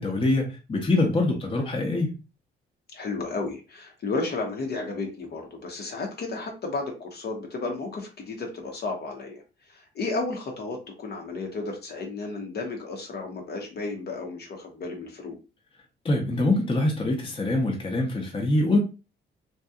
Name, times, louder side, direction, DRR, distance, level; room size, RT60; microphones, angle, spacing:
voice 1, 0.0-2.1 16.0-18.8, left 2 dB, 25° left, 0 dB, 0.7 m, -24 dB
voice 2, 2.9-15.4, left 3 dB, 55° left, 2 dB, 0.8 m, -33 dB
2.7 x 2.2 x 2.3 m, 0.30 s
cardioid pair, 90°, 20 cm